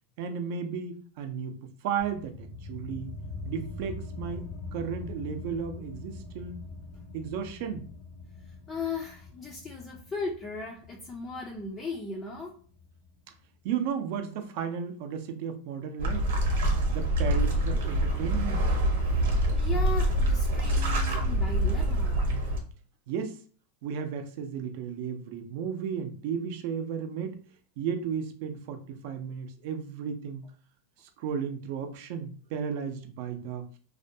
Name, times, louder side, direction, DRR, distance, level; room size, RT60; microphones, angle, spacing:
voice 1, 0.2-1.6 1.8-3.2 3.4-6.6 7.1-7.9 13.6-16.3 16.9-18.6 23.1-23.4 23.8-27.5 27.8-30.4 31.2-33.7, right 7 dB, 55° right, 7 dB, 0.5 m, -34 dB
sound 1, 2.0-13.1, left 3 dB, 55° left, 0.6 m, -43 dB
voice 2, 8.7-12.6 19.5-22.3, left 3 dB, 20° left, -1 dB, 0.4 m, -37 dB
sound 2, 16.0-22.6, right 1 dB, 80° right, 0.8 m, -25 dB
2.4 x 2.2 x 2.7 m, 0.42 s
supercardioid pair, 145°, 0 cm